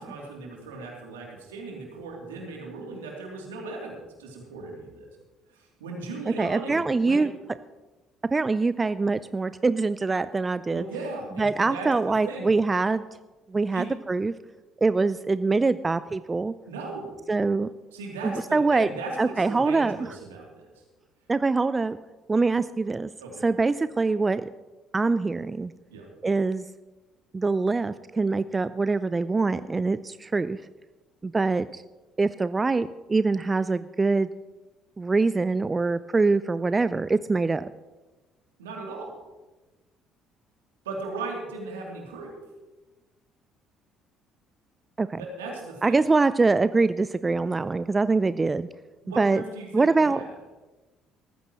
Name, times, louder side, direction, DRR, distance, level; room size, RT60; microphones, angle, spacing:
voice 1, 0.0-5.1 5.6-7.2 10.7-11.9 12.2-12.5 13.7-13.9 16.7-17.1 17.9-20.7 23.2-23.4 25.9-26.0 38.6-39.1 40.8-42.3 45.2-46.0 49.0-50.3, right 3 dB, 80° right, -1 dB, 2.9 m, -37 dB
voice 2, 6.3-7.3 8.3-10.8 11.4-13.0 13.5-14.3 14.8-16.5 17.3-17.7 18.2-18.9 19.2-20.0 21.3-22.0 22.3-23.1 23.4-24.5 24.9-25.7 26.2-26.7 27.3-30.6 31.2-31.8 32.2-34.3 35.0-37.7 45.0-45.2 45.8-48.7 49.2-49.4 49.7-50.2, right 3 dB, 25° right, 15 dB, 0.4 m, -24 dB
18.5 x 14.5 x 3.1 m, 1.2 s
figure-of-eight pair, 50°, 0 cm